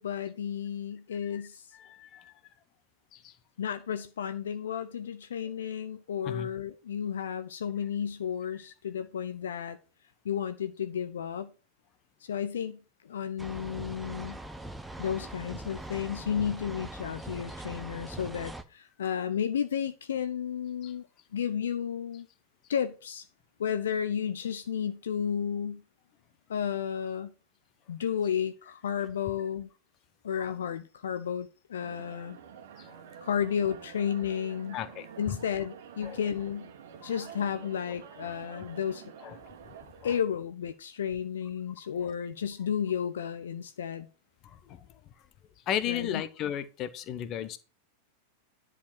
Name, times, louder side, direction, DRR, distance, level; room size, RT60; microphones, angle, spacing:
voice 1, 0.0-1.7 3.6-9.8 10.2-11.5 12.2-14.4 15.0-21.1 21.3-22.3 22.7-23.3 23.6-25.8 26.5-27.3 27.9-29.7 30.2-32.4 33.2-34.8 35.2-36.7 37.0-39.0 40.0-44.1 45.9-46.2, left 8 dB, 65° left, 0.7 m, -32 dB
voice 2, 1.8-2.3 3.1-3.3 6.2-6.5 20.8-20.9 32.8-33.0 34.7-35.4 36.0-36.2 37.0-37.1 39.2-39.4 40.0-40.1 44.4-44.9 45.7-47.6, left 10 dB, 35° left, 1.0 m, -35 dB
sound 1, 13.4-18.6, right 1 dB, 5° right, 0.8 m, -42 dB
sound 2, 31.8-40.1, right 8 dB, 55° right, 1.5 m, -48 dB
10.5 x 5.0 x 6.0 m
figure-of-eight pair, 90°, 0 cm